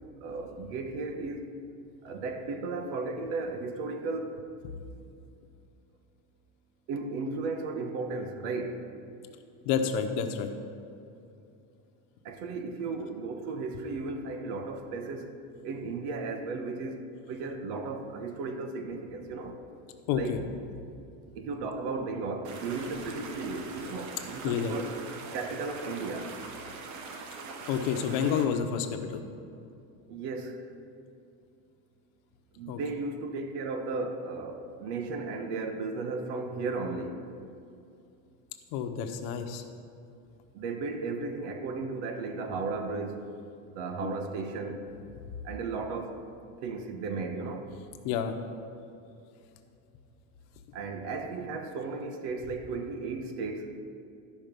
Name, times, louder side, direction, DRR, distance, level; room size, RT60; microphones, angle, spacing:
voice 1, 0.2-1.5 2.0-4.4 6.9-8.8 12.2-15.3 15.6-19.6 20.1-20.4 21.3-24.9 25.3-26.3 30.1-30.6 32.5-37.2 40.5-43.2 43.7-44.8 45.4-46.2 46.6-47.7 50.7-53.8, right 3 dB, 75° right, 6 dB, 1.1 m, -35 dB
voice 2, 9.6-10.5 20.1-20.4 24.4-24.7 27.7-29.2 32.7-32.8 38.7-39.6 44.0-44.2 48.0-48.4, left 7 dB, 70° left, 6 dB, 1.0 m, -29 dB
sound 1, 22.4-28.5, right 4 dB, 50° right, 1.1 m, -42 dB
12.5 x 5.2 x 5.2 m, 2.6 s
cardioid pair, 145°, 38 cm